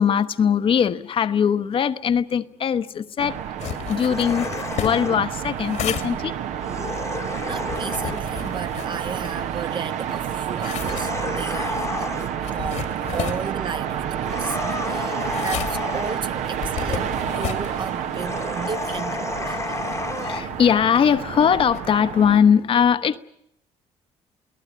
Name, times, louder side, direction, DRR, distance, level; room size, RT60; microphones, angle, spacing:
voice 1, 0.0-4.5 4.8-6.4 11.4-11.5 14.3-15.4 19.8-23.2, left 7 dB, 50° left, 1.0 m, -21 dB
sound 1, 3.2-22.4, right 9 dB, 75° right, 1.3 m, -29 dB
sound 2, 3.6-9.8 10.2-21.8, left 10 dB, 70° left, 1.9 m, -35 dB
sound 3, 4.0-5.2 6.6-8.2 10.7-12.4 14.2-16.3 18.1-20.4, left 4 dB, 25° left, 1.1 m, -31 dB
voice 2, 7.4-19.9, right 6 dB, 40° right, 1.0 m, -34 dB
29.0 x 18.0 x 8.4 m
cardioid pair, 100°, 12 cm